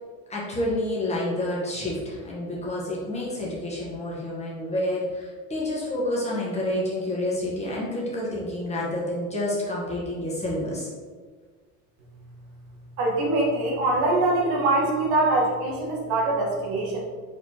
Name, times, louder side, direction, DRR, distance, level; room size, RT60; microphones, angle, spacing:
voice 1, 0.3-10.9, left 1 dB, 15° left, -5 dB, 1.1 m, -29 dB
voice 2, 13.0-17.0, right 2 dB, 85° right, -2 dB, 1.4 m, -23 dB
4.7 x 3.9 x 2.8 m, 1.5 s
cardioid pair, 135°, 39 cm